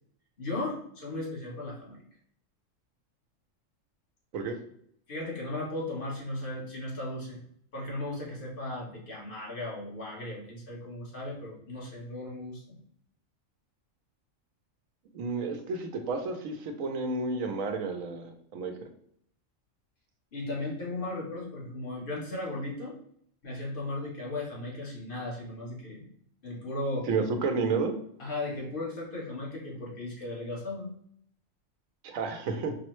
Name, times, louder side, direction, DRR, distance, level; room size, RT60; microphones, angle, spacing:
voice 1, 0.4-2.0 5.1-7.4 7.7-12.8 20.3-23.0 23.4-26.0 26.4-27.1 28.2-30.9, left 2 dB, 45° left, -4 dB, 1.3 m, -36 dB
voice 2, 15.1-18.9 27.1-27.9 32.0-32.7, right 4 dB, 85° right, 5 dB, 1.1 m, -31 dB
5.3 x 2.1 x 3.0 m, 0.66 s
omnidirectional pair, 1.4 m